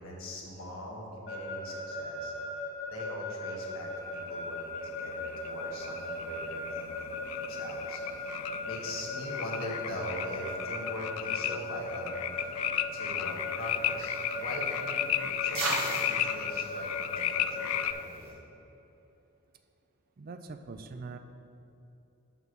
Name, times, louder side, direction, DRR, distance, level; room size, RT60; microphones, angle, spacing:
voice 1, 0.0-2.3 2.9-12.6 12.9-18.4, left 1 dB, 70° left, -2 dB, 1.4 m, -42 dB
Keyboard (musical) / Alarm, 1.3-17.9, left 3 dB, 50° left, 1.3 m, -37 dB
sound 1, 4.2-17.9, left 11 dB, 85° left, 0.3 m, -35 dB
sound 2, 13.2-18.3, right 2 dB, 65° right, 1.5 m, -40 dB
voice 2, 20.2-21.2, right 4 dB, 45° right, 8 dB, 0.4 m, -42 dB
6.1 x 6.0 x 5.5 m, 2.9 s
head